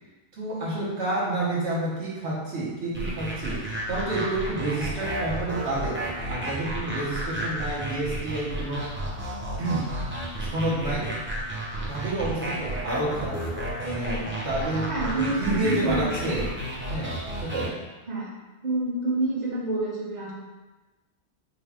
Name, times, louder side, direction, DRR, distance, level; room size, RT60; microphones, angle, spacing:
voice 1, 0.3-8.9 9.6-9.9 10.4-11.1 11.9-13.5 13.8-16.5 16.9-17.7, right 2 dB, 65° right, -6 dB, 1.4 m, -29 dB
sound 1, 2.9-17.7, right 1 dB, 15° right, 0.5 m, -32 dB
voice 2, 14.9-16.3 18.1-18.3 18.6-20.3, right 2 dB, 40° right, -7 dB, 1.2 m, -28 dB
4.8 x 2.4 x 3.4 m, 1.2 s
omnidirectional pair, 1.2 m